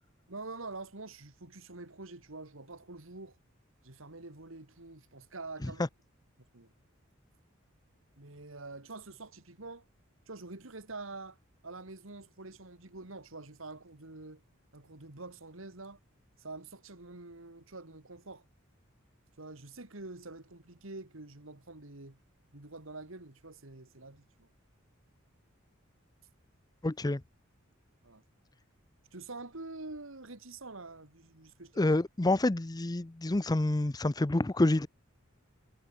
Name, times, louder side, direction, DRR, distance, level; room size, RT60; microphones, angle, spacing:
voice 1, 0.3-3.4 3.8-5.8 6.5-6.7 8.2-9.8 10.3-11.4 11.6-14.4 14.7-16.0 16.4-18.4 19.4-22.2 22.5-24.5 28.0-28.2 29.1-32.0, right 3 dB, 70° right, 2.3 m, -46 dB
voice 2, 26.8-27.2 31.8-34.9, left 2 dB, 20° left, 0.6 m, -28 dB
head